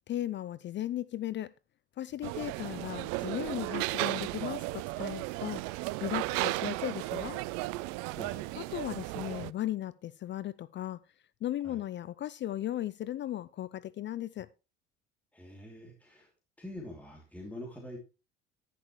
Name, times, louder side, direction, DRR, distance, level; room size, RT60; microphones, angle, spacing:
voice 1, 0.1-1.5 2.0-7.4 8.6-11.0 11.4-14.5, left 13 dB, 35° left, 0.5 m, -36 dB
sound 1, 2.2-9.5, right 21 dB, 60° right, 0.5 m, -35 dB
voice 2, 8.1-8.5 11.6-11.8 15.3-16.3 16.6-18.0, left 1 dB, 5° left, 2.8 m, -45 dB
11.0 x 10.0 x 3.1 m
hypercardioid pair, 65°, 31 cm